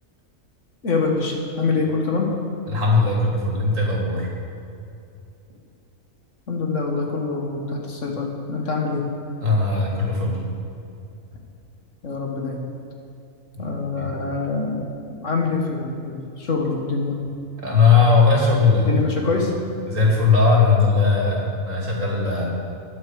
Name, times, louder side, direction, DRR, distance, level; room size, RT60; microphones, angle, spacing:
voice 1, 0.8-2.3 6.5-9.0 12.0-12.7 13.6-17.3 18.8-19.5, left 4 dB, 65° left, 1 dB, 1.9 m, -25 dB
voice 2, 2.7-4.3 9.4-10.4 14.0-14.1 17.6-19.0 19.9-22.4, left 4 dB, 65° right, -3 dB, 3.0 m, -18 dB
20.0 x 7.3 x 4.9 m, 2.6 s
omnidirectional pair, 1.4 m